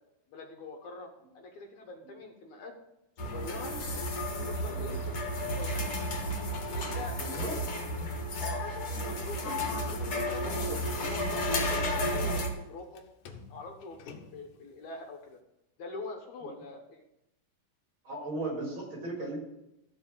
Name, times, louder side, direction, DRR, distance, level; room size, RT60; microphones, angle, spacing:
voice 1, 0.3-1.1 1.3-2.7 3.2-3.7 4.4-6.1 6.7-7.2 8.4-9.6 9.9-13.0 13.5-15.4 15.8-17.0, left 3 dB, 65° left, 4 dB, 2.3 m, -44 dB
sound 1, 3.2-12.5, equal, 50° left, 2.1 m, -32 dB
voice 2, 7.1-7.6 8.0-8.1 9.4-9.6 10.6-10.8 16.4-16.6 18.0-19.4, right 2 dB, 35° right, -1 dB, 4.3 m, -37 dB
Sliding door, 9.4-13.0 13.3-14.6, left 8 dB, 85° left, 2.7 m, -44 dB
14.5 x 4.8 x 7.3 m, 0.88 s
omnidirectional pair, 4.0 m